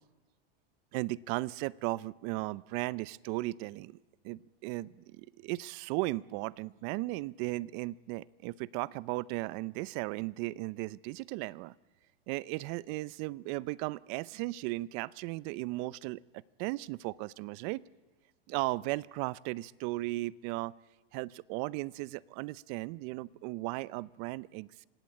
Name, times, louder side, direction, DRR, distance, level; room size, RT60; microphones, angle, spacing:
voice 1, 0.9-4.0 4.2-11.7 12.3-17.8 18.5-20.7 21.1-24.8, right 20 dB, 50° right, 21 dB, 0.7 m, -36 dB
25.5 x 17.0 x 8.5 m, 1.3 s
supercardioid pair, 125°, 30 cm